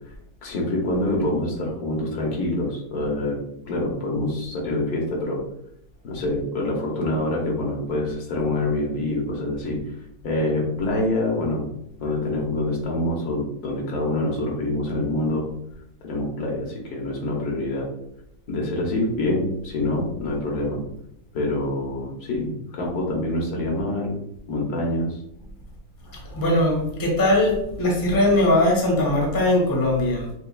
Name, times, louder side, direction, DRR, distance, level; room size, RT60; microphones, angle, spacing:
voice 1, 0.4-5.4 6.0-9.8 10.2-11.6 12.0-15.4 16.0-17.9 18.5-20.8 21.3-24.2 24.5-25.2, left 1 dB, 75° left, -1 dB, 1.5 m, -26 dB
voice 2, 26.1-30.3, left 1 dB, 20° left, -2 dB, 0.7 m, -20 dB
5.5 x 2.3 x 2.3 m, 0.76 s
omnidirectional pair, 1.6 m